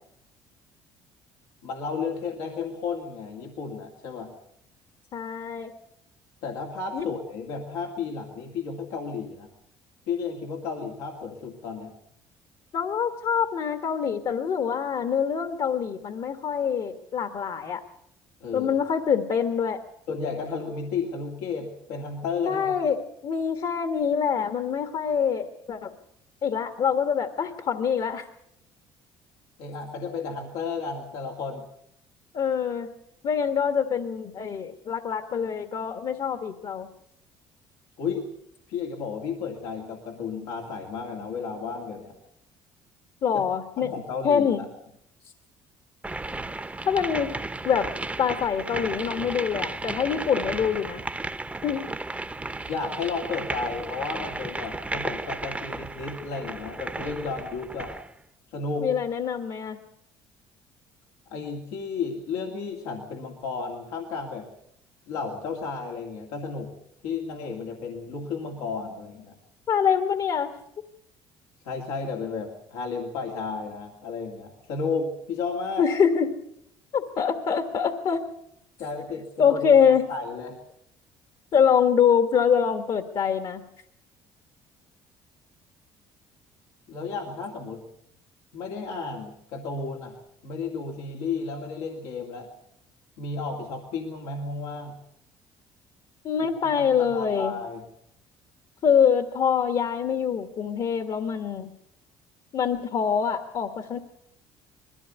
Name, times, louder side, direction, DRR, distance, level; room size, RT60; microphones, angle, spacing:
voice 1, 1.6-4.4 6.4-9.5 10.1-12.0 18.4-18.8 20.1-22.9 29.6-31.6 38.0-38.3 38.7-42.2 43.3-43.4 43.8-44.7 52.7-57.9 58.5-59.0 61.3-64.5 65.1-66.7 67.0-69.4 71.6-75.9 78.8-80.6 86.9-87.9 88.5-90.2 90.4-92.5 93.2-95.0 96.5-97.9, left 4 dB, 90° left, -1 dB, 2.4 m, -33 dB
voice 2, 5.1-5.7 6.9-7.1 12.7-17.8 18.5-19.8 22.5-25.9 26.4-28.3 32.3-32.9 33.2-36.9 43.2-43.9 44.2-44.6 46.8-47.3 47.6-47.9 48.2-51.0 51.6-51.8 58.8-59.8 69.7-70.5 75.8-76.3 76.9-78.2 79.4-80.0 81.5-83.6 96.2-97.5 98.8-101.7 102.5-104.0, left 7 dB, 55° left, 7 dB, 1.5 m, -24 dB
sound 1, 46.0-58.1, right 2 dB, 15° right, 0.9 m, -34 dB
21.0 x 15.5 x 8.2 m, 0.77 s
supercardioid pair, 80°, 10 cm